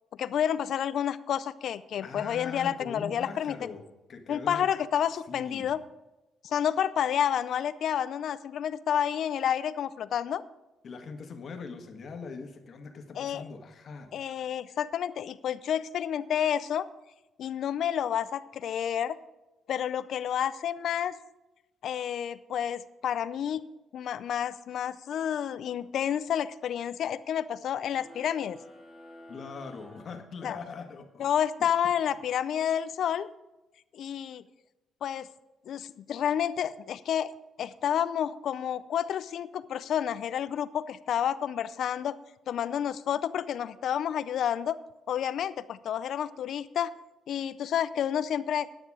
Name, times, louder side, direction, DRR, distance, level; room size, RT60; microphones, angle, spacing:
voice 1, 0.2-3.5 4.3-5.8 6.4-10.4 13.2-13.4 14.1-16.9 17.4-19.2 19.7-21.2 21.8-23.6 23.9-28.6 30.4-30.6 31.2-33.3 33.9-34.4 35.0-35.3 35.7-42.2 42.5-44.8 45.1-47.0 47.3-48.7, left 9 dB, 70° left, 16 dB, 0.4 m, -30 dB
voice 2, 2.0-4.7 5.3-5.7 10.8-14.1 29.3-31.3, left 4 dB, 50° left, 6 dB, 1.4 m, -41 dB
sound 1, 27.9-30.9, left 1 dB, 5° right, 2.5 m, -51 dB
9.8 x 9.7 x 4.8 m, 1.0 s
cardioid pair, 90°, 0 cm